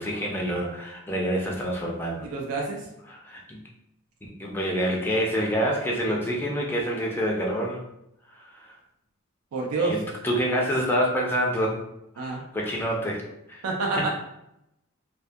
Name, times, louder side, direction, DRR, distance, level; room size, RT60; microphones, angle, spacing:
voice 1, 0.0-2.3 3.1-3.6 4.2-7.8 8.3-8.8 9.8-11.8 12.2-13.2 13.5-13.7 14.0-14.1, equal, 10° left, -2 dB, 0.3 m, -27 dB
voice 2, 2.2-2.9 9.5-10.0 12.2-12.4 13.6-14.1, right 3 dB, 75° right, 0 dB, 0.4 m, -27 dB
2.3 x 2.1 x 2.5 m, 0.82 s
head